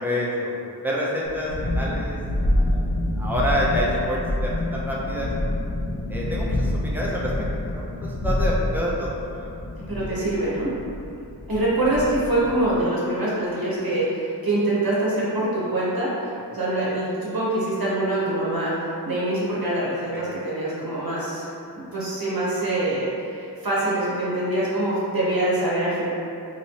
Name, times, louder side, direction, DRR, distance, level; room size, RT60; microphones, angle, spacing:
voice 1, 0.0-0.6 0.8-2.9 3.2-5.3 6.1-7.3 7.7-9.5 20.1-20.2, equal, 5° right, -6 dB, 0.6 m, -28 dB
Thunderstorm, 1.2-12.8, left 1 dB, 55° left, 0.6 m, -27 dB
voice 2, 9.9-10.7 11.5-18.7 19.0-21.5 21.7-26.1, right 1 dB, 60° right, -8 dB, 0.8 m, -24 dB
2.9 x 2.8 x 2.8 m, 2.6 s
wide cardioid pair, 55°, 40 cm